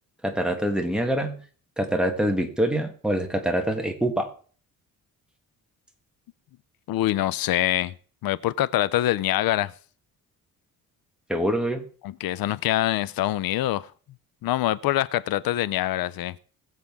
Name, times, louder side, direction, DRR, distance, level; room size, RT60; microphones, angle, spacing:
voice 1, 0.2-1.4 1.8-4.3 11.3-11.8, right 1 dB, ahead, 1.3 m, -25 dB
voice 2, 6.9-7.9 8.2-9.7 12.0-13.9 14.4-16.4, left 14 dB, 90° left, 0.6 m, -24 dB
21.0 x 7.5 x 3.6 m
wide cardioid pair, 175°, 34 cm